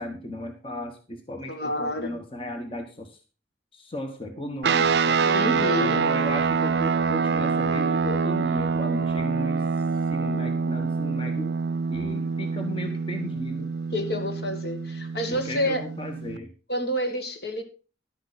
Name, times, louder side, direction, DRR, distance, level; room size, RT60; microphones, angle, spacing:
voice 1, 0.0-3.2 3.7-5.2 5.5-9.7 10.1-11.6 11.9-13.7 15.3-16.5, left 1 dB, 30° left, 5 dB, 1.3 m, -35 dB
voice 2, 1.5-2.2 5.2-6.1 13.9-15.9 16.7-17.6, left 1 dB, 60° left, 6 dB, 2.1 m, -29 dB
sound 1, 4.6-16.4, right 5 dB, 65° right, 0.5 m, -25 dB
12.0 x 9.5 x 4.1 m, 0.33 s
head